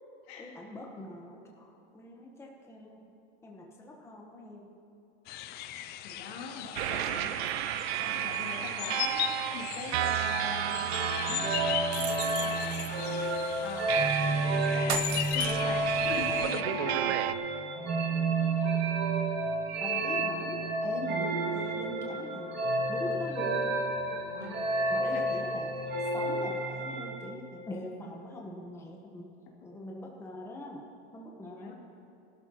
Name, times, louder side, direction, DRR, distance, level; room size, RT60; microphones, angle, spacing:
voice 1, 0.4-3.1 3.4-4.7 19.8-22.6 22.9-23.7 24.9-29.3 29.6-30.8 31.1-31.7, left 1 dB, 10° left, -1 dB, 1.1 m, -42 dB
sound 1, 5.3-16.6, left 12 dB, 30° left, 0.4 m, -38 dB
voice 2, 6.0-7.3 8.0-12.9 13.6-15.0 15.3-17.2 20.9-21.2 24.1-24.6 25.0-25.2 31.4-31.7, left 4 dB, 80° left, -1 dB, 2.5 m, -42 dB
sound 2, 6.8-17.3, right 13 dB, 80° right, 0.5 m, -33 dB
sound 3, 10.9-27.3, right 2 dB, 35° right, 2.1 m, -31 dB
18.0 x 12.5 x 3.0 m, 2.6 s
supercardioid pair, 135°, 32 cm